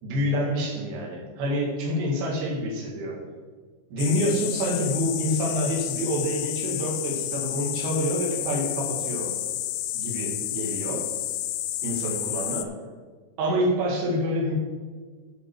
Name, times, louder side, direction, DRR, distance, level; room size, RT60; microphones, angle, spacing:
voice 1, 0.0-3.2 3.9-9.3 9.9-11.0 11.8-12.7 13.4-14.6, equal, 65° right, -2 dB, 3.9 m, -27 dB
sound 1, 4.0-12.7, left 13 dB, 80° left, 2.2 m, -31 dB
14.0 x 5.6 x 4.7 m, 1.5 s
omnidirectional pair, 4.9 m